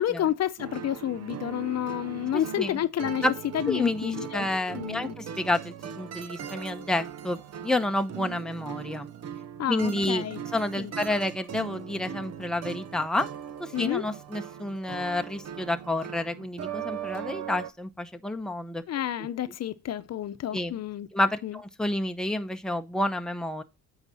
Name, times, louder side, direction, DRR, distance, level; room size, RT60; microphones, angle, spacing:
voice 1, 0.0-3.3 3.5-4.5 4.7-5.2 9.6-10.4 10.8-10.9 13.7-14.0 18.9-21.1 21.4-21.6, left 11 dB, 60° left, 0.8 m, -30 dB
sound 1, 0.6-17.7, right 8 dB, 60° right, 0.8 m, -39 dB
voice 2, 2.3-2.8 3.2-3.3 3.7-9.1 9.7-10.3 10.5-13.3 13.6-18.8 19.2-19.3 20.5-20.7 21.1-23.6, left 1 dB, ahead, 0.8 m, -29 dB
8.9 x 4.9 x 4.1 m
cardioid pair, 90°, 30 cm